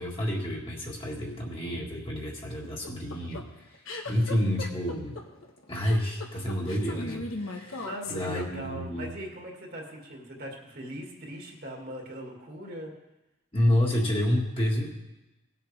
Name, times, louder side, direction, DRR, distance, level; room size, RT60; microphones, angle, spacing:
voice 1, 0.0-5.2 5.7-9.1 13.5-14.9, left 1 dB, 25° left, -2 dB, 1.8 m, -29 dB
sound 1, 2.6-8.9, left 3 dB, 80° left, 1.3 m, -38 dB
voice 2, 7.6-12.9, right 1 dB, 50° right, 0 dB, 2.2 m, -40 dB
18.5 x 7.8 x 3.4 m, 1.0 s
head